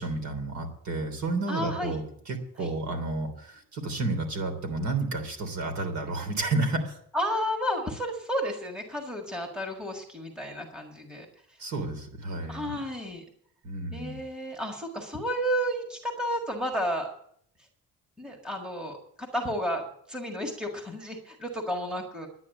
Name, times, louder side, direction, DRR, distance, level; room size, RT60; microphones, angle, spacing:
voice 1, 0.0-7.0 11.6-12.7 13.6-14.2, right 2 dB, 55° right, 6 dB, 3.3 m, -31 dB
voice 2, 1.5-2.0 2.6-2.7 7.1-11.3 12.5-13.2 13.9-17.1 18.2-22.3, equal, 5° right, 2 dB, 1.7 m, -32 dB
11.0 x 9.9 x 7.7 m, 0.66 s
cardioid pair, 175°, 34 cm